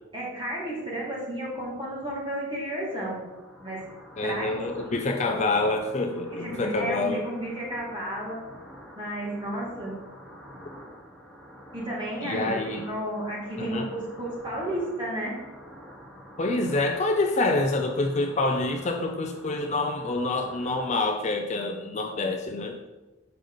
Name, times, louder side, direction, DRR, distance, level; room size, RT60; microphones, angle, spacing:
voice 1, 0.1-3.2 3.6-3.9 4.2-4.6 5.3-5.4 6.4-8.4 9.0-9.9 11.7-15.3, right 1 dB, 25° right, -5 dB, 2.1 m, -32 dB
sound 1, 2.4-21.0, equal, ahead, 1.1 m, -47 dB
voice 2, 4.2-7.2 12.2-12.8 13.6-13.9 16.4-22.8, left 2 dB, 35° left, 4 dB, 0.5 m, -27 dB
6.8 x 5.0 x 3.9 m, 1.1 s
head